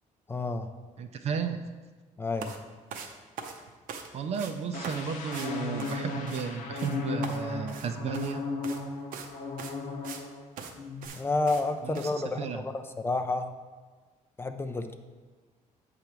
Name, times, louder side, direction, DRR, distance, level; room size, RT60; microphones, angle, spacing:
voice 1, 0.3-0.7 2.2-2.6 11.2-13.5 14.4-14.9, left 3 dB, 15° left, 7 dB, 0.4 m, -30 dB
voice 2, 1.0-1.6 4.1-8.4 11.8-12.6, right 6 dB, 50° right, 7 dB, 0.4 m, -33 dB
sound 1, 2.4-2.6 2.9-4.1 4.3-4.5 4.8-5.0 5.3-5.5 5.8-6.5 6.8-7.0 7.2-8.3 8.6-8.8 9.1-9.3 9.6-10.2 10.6-10.7 11.0-11.2 11.5-11.6 12.0-12.1, right 6 dB, 85° right, 0.7 m, -41 dB
sound 2, 4.7-10.5 10.8-11.1, left 3 dB, 80° left, 0.9 m, -35 dB
8.0 x 3.4 x 5.8 m, 1.4 s
cardioid pair, 140°, 14 cm